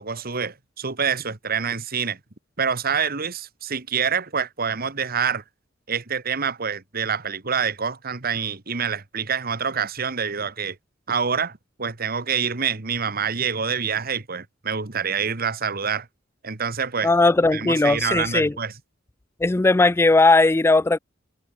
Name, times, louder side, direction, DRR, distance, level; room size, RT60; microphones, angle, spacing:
voice 1, 0.0-2.2 2.6-5.4 5.9-10.8 11.1-16.1 16.4-17.1 17.5-18.7, right 6 dB, 50° right, 1.6 m, -26 dB
voice 2, 17.0-18.5 19.4-21.0, left 3 dB, 15° left, 0.3 m, -18 dB
head